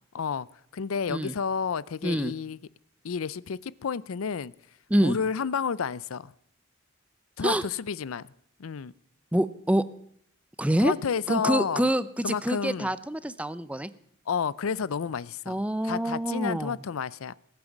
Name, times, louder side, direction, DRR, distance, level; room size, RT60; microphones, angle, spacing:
voice 1, 0.1-0.5 0.7-2.6 3.0-4.5 5.0-6.3 7.4-8.3 8.6-8.9 10.8-11.9 12.2-12.9 14.3-17.3, left 6 dB, 85° left, 21 dB, 0.5 m, -30 dB
voice 2, 2.0-2.3 4.9-5.2 7.4-7.6 9.3-9.8 10.6-10.9 11.3-13.9 15.5-16.7, right 1 dB, 5° right, 15 dB, 0.5 m, -26 dB
20.5 x 9.0 x 7.2 m, 0.72 s
head